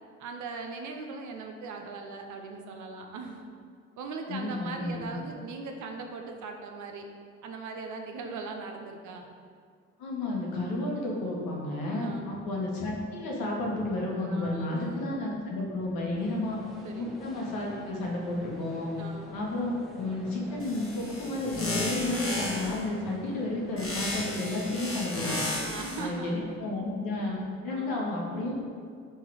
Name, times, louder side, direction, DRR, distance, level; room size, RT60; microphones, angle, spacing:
voice 1, 0.2-3.5 4.0-7.1 7.4-9.3 12.0-12.4 14.3-15.1 16.8-17.2 19.0-19.3 25.6-26.6 27.7-28.0, right 4 dB, 50° right, 3 dB, 0.6 m, -39 dB
voice 2, 4.3-5.0 10.0-16.6 16.9-18.9 19.3-25.4 26.0-27.4 27.6-28.5, left 2 dB, 65° left, -3 dB, 1.0 m, -32 dB
sound 1, 16.2-24.8, equal, ahead, 0.9 m, -48 dB
sound 2, 20.6-22.8 23.8-26.1, left 2 dB, 35° left, 1.2 m, -33 dB
3.8 x 2.7 x 4.7 m, 2.2 s
hypercardioid pair, 40°, 37 cm